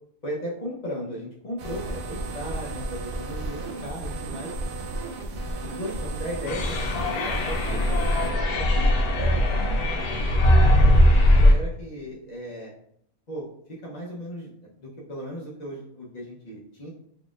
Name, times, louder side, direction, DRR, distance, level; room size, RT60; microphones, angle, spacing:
voice 1, 0.2-4.5 5.6-8.0 8.5-10.6 10.8-11.0 11.3-12.7 13.3-13.4 13.8-14.5 14.8-16.9, equal, 40° left, -5 dB, 0.6 m, -36 dB
sound 1, 1.6-8.3, right 2 dB, 65° right, 0.5 m, -33 dB
sound 2, 6.5-11.5, left 1 dB, 90° left, 1.2 m, -19 dB
4.1 x 3.0 x 2.4 m, 0.67 s
omnidirectional pair, 1.6 m